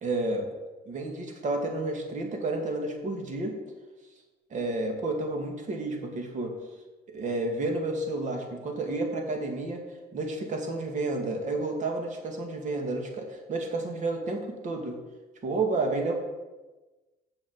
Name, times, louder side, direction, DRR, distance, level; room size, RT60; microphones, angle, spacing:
voice 1, 0.0-0.5 0.9-3.6 4.5-6.6 7.1-9.8 10.1-15.0 15.4-16.1, right 2 dB, 45° right, 3 dB, 2.1 m, -31 dB
7.1 x 6.5 x 7.3 m, 1.2 s
cardioid pair, 110°, 17 cm